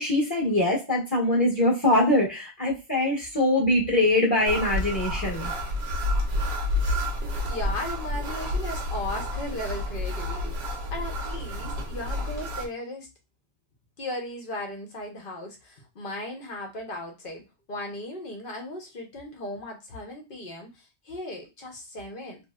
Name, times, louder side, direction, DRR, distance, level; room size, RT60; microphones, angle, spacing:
voice 1, 0.0-5.5, left 1 dB, 15° left, -6 dB, 1.1 m, -23 dB
sound 1, 4.5-12.7, left 1 dB, 65° right, 1.0 m, -29 dB
voice 2, 7.4-13.1 14.0-17.4 17.7-22.4, left 1 dB, 50° left, 2 dB, 1.0 m, -36 dB
3.0 x 2.8 x 2.3 m, 0.26 s
omnidirectional pair, 1.2 m